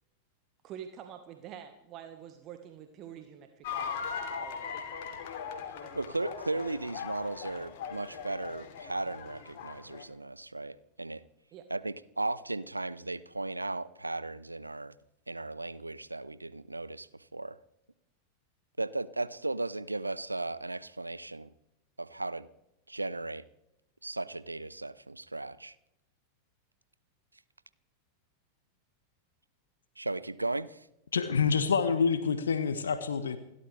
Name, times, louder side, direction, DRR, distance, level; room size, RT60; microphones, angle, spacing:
voice 1, 0.6-4.8 5.8-5.9 7.4-7.5 11.5-11.7, right 9 dB, 35° right, 6 dB, 1.5 m, -47 dB
sound 1, 3.6-10.0, left 6 dB, 50° left, 2.9 m, -40 dB
voice 2, 5.9-11.2 11.7-14.9 15.3-17.6 18.8-21.5 22.0-22.5 22.9-23.4 24.0-25.7 30.0-30.9, right 2 dB, 85° right, 16 dB, 0.7 m, -36 dB
voice 3, 31.1-33.4, left 6 dB, 70° left, 11 dB, 1.2 m, -27 dB
29.0 x 12.5 x 3.4 m, 0.85 s
figure-of-eight pair, 90°, 0 cm